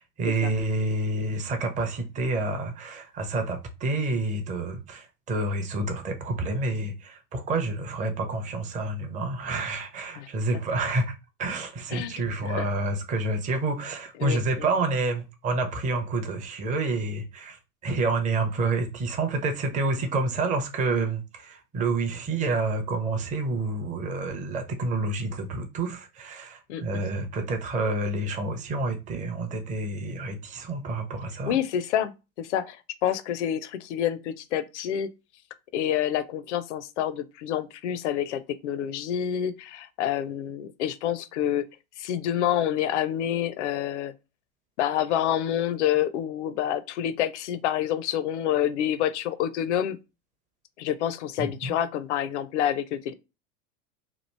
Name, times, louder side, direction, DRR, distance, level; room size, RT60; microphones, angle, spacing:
voice 1, 0.2-11.1 11.4-31.6 51.4-51.7, right 2 dB, 20° right, 0.5 m, -28 dB
voice 2, 26.7-27.0 31.5-32.1 32.4-35.1 35.7-41.6 42.0-44.1 44.8-50.0 50.8-53.1, left 10 dB, 55° left, 0.5 m, -28 dB
3.0 x 2.4 x 3.2 m
figure-of-eight pair, 85°, 41 cm